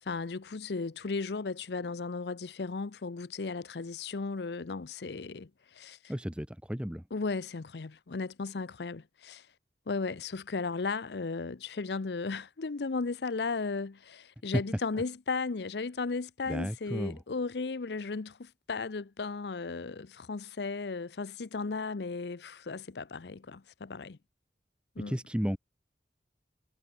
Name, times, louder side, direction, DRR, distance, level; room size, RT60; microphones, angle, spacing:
voice 1, 0.1-6.0 7.1-9.4 9.9-24.2 25.0-25.2, left 4 dB, 70° left, 0.6 m, -35 dB
voice 2, 6.1-7.0 14.5-14.6 16.4-17.2 25.1-25.6, equal, 5° right, 1.1 m, -33 dB
head